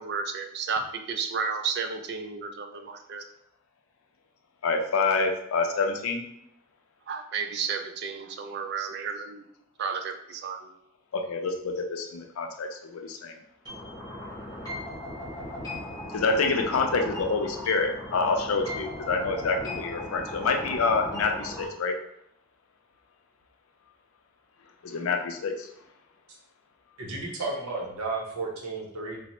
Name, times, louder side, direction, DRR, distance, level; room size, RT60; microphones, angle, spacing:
voice 1, 0.0-3.2 7.1-9.4 9.8-10.7, right 5 dB, 50° right, 6 dB, 0.3 m, -32 dB
voice 2, 4.6-6.2 11.1-13.4 16.1-22.0 24.8-25.7, left 4 dB, 90° left, 4 dB, 0.5 m, -27 dB
sound 1, 13.7-21.7, left 1 dB, 15° left, 0.8 m, -37 dB
voice 3, 27.0-29.2, right 3 dB, 90° right, -1 dB, 0.7 m, -33 dB
4.1 x 2.0 x 2.9 m, 0.75 s
head